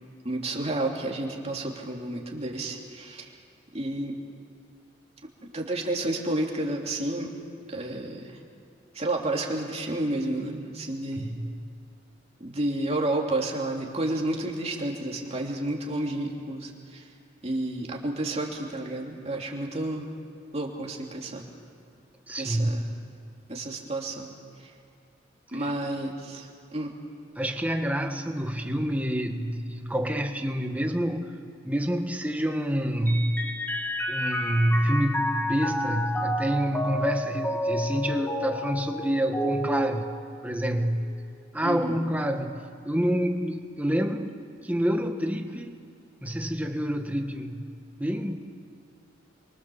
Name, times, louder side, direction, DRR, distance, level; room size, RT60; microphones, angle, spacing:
voice 1, 0.2-3.3 3.7-4.2 5.4-7.3 7.7-8.4 8.9-11.4 12.4-17.1 17.4-20.1 20.5-21.5 22.4-22.9 23.5-24.3 24.6-24.7 25.5-26.9 41.6-42.0, right 1 dB, 35° right, 0 dB, 2.9 m, -31 dB
voice 2, 11.1-11.6 22.3-22.7 25.5-25.7 27.4-33.5 34.1-40.1 40.4-41.1 41.5-45.8 46.2-47.7 48.0-48.4, equal, 10° right, 4 dB, 1.6 m, -27 dB
Mallet percussion, 33.1-40.8, equal, 10° left, 1.4 m, -31 dB
29.0 x 23.5 x 7.1 m, 2.4 s
head